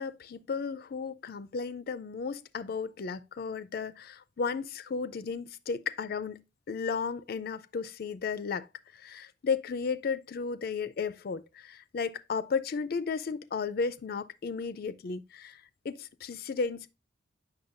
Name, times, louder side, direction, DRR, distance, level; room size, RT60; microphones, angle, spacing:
voice 1, 0.0-8.7 8.9-16.9, left 5 dB, 55° left, 0.4 m, -34 dB
7.9 x 5.9 x 2.5 m
head